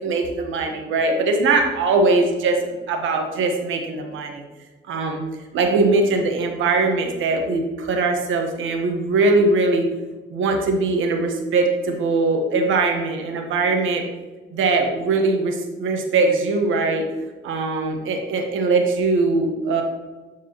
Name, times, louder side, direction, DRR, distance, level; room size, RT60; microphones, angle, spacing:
voice 1, 0.0-4.4 4.9-5.2 5.5-9.8 10.3-14.0 14.5-17.1 17.4-19.8, right 3 dB, 80° right, 3 dB, 1.3 m, -21 dB
11.5 x 4.6 x 3.1 m, 1.3 s
cardioid pair, 90°, 20 cm